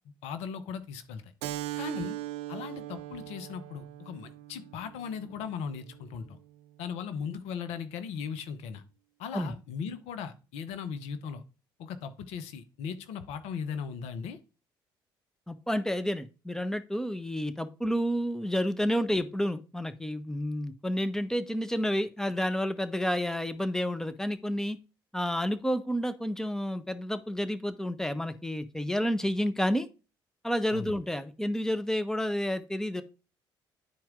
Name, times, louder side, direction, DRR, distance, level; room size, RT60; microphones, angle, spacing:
voice 1, 0.2-1.3 1.8-2.2 2.5-6.4 6.8-8.8 9.2-11.4 11.8-14.4 30.7-31.0, left 6 dB, 75° left, 11 dB, 0.9 m, -38 dB
Keyboard (musical), 1.4-6.5, right 15 dB, 75° right, 0.4 m, -40 dB
voice 2, 15.5-24.8 25.1-29.9 30.4-33.0, equal, 5° left, 11 dB, 1.0 m, -30 dB
10.5 x 4.5 x 3.7 m, 0.32 s
hypercardioid pair, 50°, 11 cm